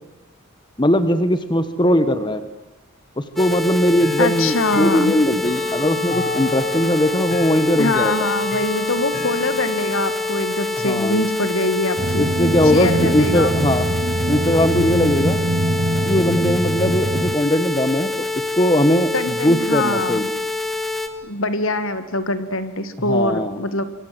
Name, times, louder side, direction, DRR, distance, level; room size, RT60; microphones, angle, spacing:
voice 1, 0.8-2.4 3.2-8.3 10.8-11.2 12.1-13.9 14.3-15.4 16.1-18.2 18.5-20.2 23.0-23.6, left 1 dB, 20° left, 11 dB, 1.1 m, -19 dB
sound 1, 3.4-21.1, left 3 dB, ahead, 1.8 m, -26 dB
Chime / Clock, 4.0-14.8, left 3 dB, 40° left, 1.5 m, -35 dB
voice 2, 4.2-5.2 7.8-12.3 12.7-13.5 19.1-20.3 21.2-23.8, left 2 dB, 60° left, 12 dB, 1.9 m, -23 dB
sound 2, 12.0-17.4, right 2 dB, 45° right, 0.8 m, -23 dB
27.0 x 24.0 x 7.7 m, 1.0 s
head